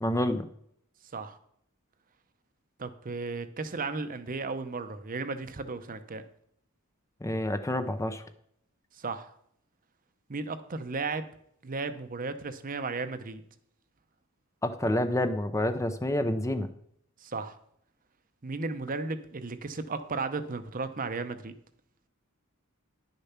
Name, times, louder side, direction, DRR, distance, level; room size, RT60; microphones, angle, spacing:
voice 1, 0.0-0.5 7.2-8.2 14.6-16.7, left 1 dB, 15° left, 9 dB, 0.5 m, -28 dB
voice 2, 2.8-6.2 9.0-9.3 10.3-11.2 11.6-13.4 17.2-17.6 18.4-21.5, right 3 dB, 40° right, 10 dB, 0.7 m, -35 dB
10.5 x 6.7 x 5.8 m, 0.69 s
head